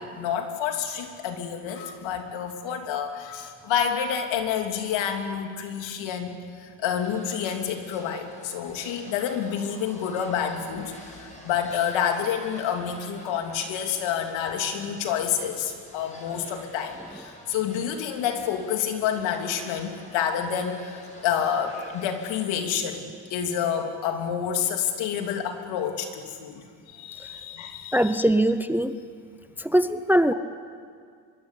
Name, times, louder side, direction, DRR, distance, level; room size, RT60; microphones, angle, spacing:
voice 1, 0.0-6.3 6.6-28.2 30.2-30.3, left 8 dB, 75° left, 4 dB, 3.2 m, -29 dB
sound 1, 6.9-22.4, left 1 dB, 15° left, 6.5 m, -48 dB
voice 2, 27.9-28.9 29.6-30.3, right 1 dB, 5° right, 11 dB, 0.7 m, -21 dB
25.0 x 23.0 x 8.5 m, 2.1 s
cardioid pair, 115°, 45 cm